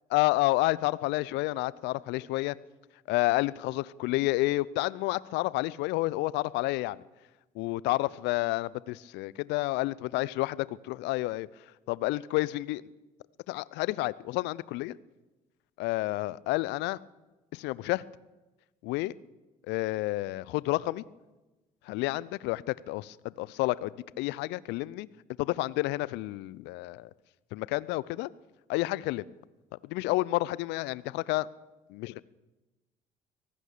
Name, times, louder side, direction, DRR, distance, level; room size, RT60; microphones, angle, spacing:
voice 1, 0.1-2.6 3.1-7.0 7.6-11.5 11.9-12.9 13.5-15.0 15.8-17.0 17.5-18.0 18.8-19.1 19.7-21.0 21.9-23.9 24.2-25.1 25.4-27.1 27.5-28.3 28.7-29.2 29.8-31.5 31.9-32.2, left 19 dB, 70° left, 21 dB, 0.7 m, -30 dB
24.0 x 18.5 x 6.8 m, 1.1 s
hypercardioid pair, 50°, 19 cm